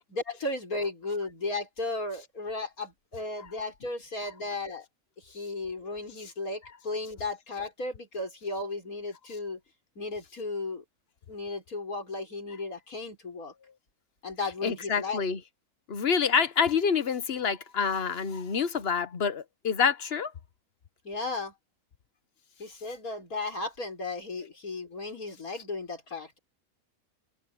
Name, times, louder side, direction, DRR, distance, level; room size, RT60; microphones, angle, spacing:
voice 1, 0.0-4.9 5.2-9.6 10.0-10.8 11.3-13.5 14.2-15.2 21.0-21.5 22.6-26.4, left 3 dB, 80° left, 6.0 m, -35 dB
voice 2, 14.6-15.4 15.9-20.3, left 6 dB, 50° left, 1.1 m, -27 dB
omnidirectional pair, 1.5 m